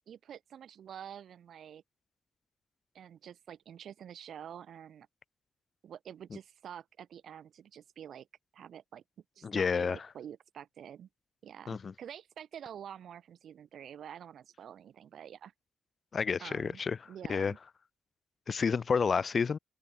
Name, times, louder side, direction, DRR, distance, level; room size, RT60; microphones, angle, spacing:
voice 1, 0.1-1.8 2.9-5.1 5.8-8.3 8.5-9.0 9.4-11.1 11.4-15.5 16.4-16.8 17.1-17.6, right 9 dB, 70° right, 0.9 m, -48 dB
voice 2, 9.4-10.1 11.7-11.9 16.1-17.0 17.3-17.5 18.5-19.6, left 5 dB, 45° left, 0.5 m, -30 dB
open air
cardioid pair, 110°, 0 cm